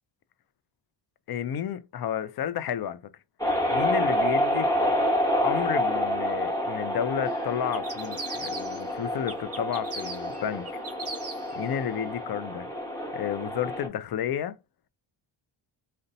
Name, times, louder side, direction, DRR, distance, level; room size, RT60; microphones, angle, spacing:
voice 1, 1.3-3.0 3.7-4.7 5.4-10.7 11.5-12.7 13.1-14.6, left 9 dB, 50° left, 0.4 m, -31 dB
sound 1, 3.4-13.9, equal, 5° left, 1.1 m, -28 dB
sound 2, 7.7-8.9 9.3-11.6, right 3 dB, 30° right, 0.8 m, -39 dB
2.6 x 2.2 x 3.9 m
cardioid pair, 75°, 50 cm